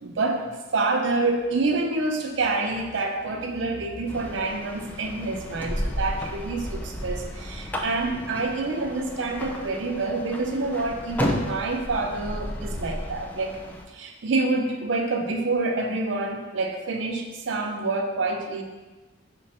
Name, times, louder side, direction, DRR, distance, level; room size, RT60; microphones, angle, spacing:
voice 1, 0.0-13.6 13.9-18.6, right 3 dB, 80° right, 3 dB, 0.5 m, -27 dB
sound 1, 4.1-13.9, left 1 dB, 10° left, 0.3 m, -33 dB
5.0 x 2.2 x 4.2 m, 1.2 s
head